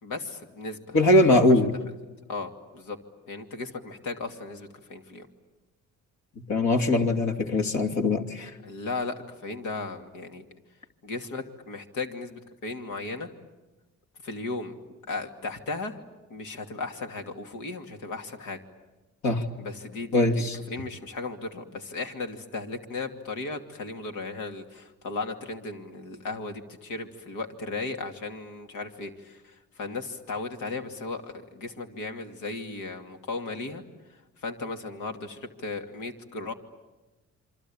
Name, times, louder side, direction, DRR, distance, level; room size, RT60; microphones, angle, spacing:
voice 1, 0.0-1.3 2.3-3.0 3.3-5.3 8.6-10.4 11.0-13.3 14.2-14.7 15.1-16.0 16.3-18.6 19.6-33.8 34.4-36.5, left 3 dB, 85° left, 5 dB, 2.6 m, -36 dB
voice 2, 0.9-1.8 6.5-8.5 19.2-19.4 20.1-20.6, left 2 dB, 65° left, 5 dB, 2.7 m, -21 dB
27.5 x 24.5 x 8.7 m, 1.1 s
cardioid pair, 90°, 30 cm